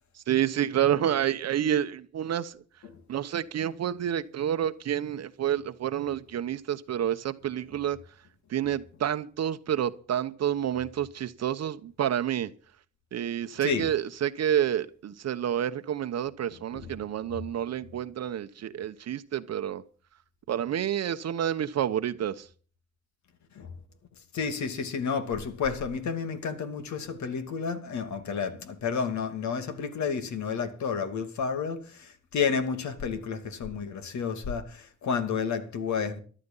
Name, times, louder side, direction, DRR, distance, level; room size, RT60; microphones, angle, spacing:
voice 1, 0.3-2.5 3.1-8.0 8.5-12.5 13.1-19.8 20.5-22.5, right 10 dB, 55° right, 0.9 m, -29 dB
voice 2, 13.6-13.9 16.5-17.5 23.5-23.7 24.3-36.2, left 6 dB, 70° left, 2.5 m, -31 dB
14.0 x 12.0 x 5.5 m
cardioid pair, 90°, 30 cm